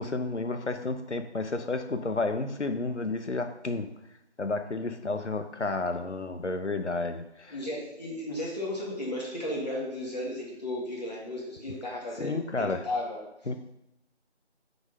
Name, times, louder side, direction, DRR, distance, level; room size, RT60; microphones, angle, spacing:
voice 1, 0.0-3.9 4.4-7.6 12.2-12.9 13.5-13.6, left 3 dB, 80° left, 7 dB, 1.0 m, -31 dB
voice 2, 7.5-13.2, left 1 dB, 40° left, -5 dB, 2.3 m, -34 dB
6.2 x 5.0 x 5.2 m, 0.84 s
figure-of-eight pair, 170°, 34 cm